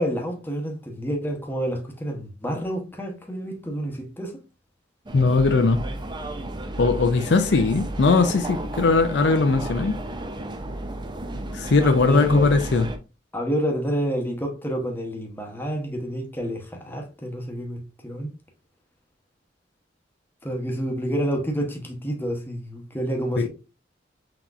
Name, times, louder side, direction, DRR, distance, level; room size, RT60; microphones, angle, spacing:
voice 1, 0.0-4.4 12.0-12.5 13.3-18.3 20.4-23.5, equal, 10° left, 0.9 m, -28 dB
voice 2, 5.1-5.8 6.8-10.0 11.5-12.9 23.4-23.5, left 3 dB, 65° left, 0.5 m, -19 dB
sound 1, 5.1-13.0, right 1 dB, 25° right, 0.5 m, -33 dB
5.8 x 2.9 x 2.4 m
head